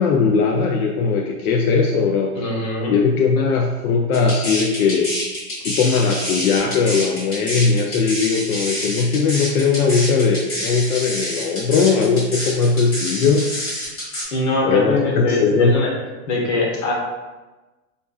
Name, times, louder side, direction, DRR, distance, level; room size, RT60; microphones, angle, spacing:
voice 1, 0.0-2.3 2.9-5.1 5.6-13.5 14.6-15.7, left 5 dB, 85° left, 1 dB, 0.6 m, -19 dB
voice 2, 2.4-2.9 14.3-15.9 16.3-16.9, left 2 dB, 55° left, -1 dB, 1.1 m, -21 dB
sound 1, 4.1-14.2, equal, 30° left, 1.4 m, -27 dB
5.2 x 2.5 x 2.3 m, 1.2 s
supercardioid pair, 165°, 42 cm